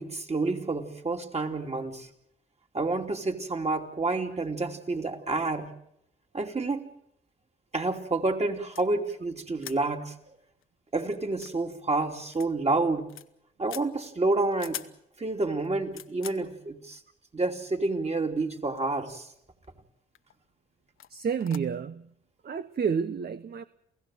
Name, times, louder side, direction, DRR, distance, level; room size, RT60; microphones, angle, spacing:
voice 1, 0.0-2.1 2.7-5.7 6.3-6.9 7.7-10.1 10.9-13.1 13.6-14.8 15.2-17.0 17.3-19.3, right 3 dB, 30° right, 3.0 m, -29 dB
sound 1, 8.7-8.9 9.6-9.8 10.2-10.3 10.6-10.7 11.3-11.5 12.3-12.5 12.8-13.3 13.7-13.9 14.5-14.9 15.6-16.4 17.4-17.5 18.4-18.9 19.2-19.7 20.1-20.3 21.0-21.1 21.4-21.6, left 11 dB, 75° left, 1.1 m, -42 dB
voice 2, 21.1-22.1 22.4-23.6, right 6 dB, 50° right, 0.9 m, -30 dB
29.0 x 16.0 x 7.7 m
supercardioid pair, 60°, 21 cm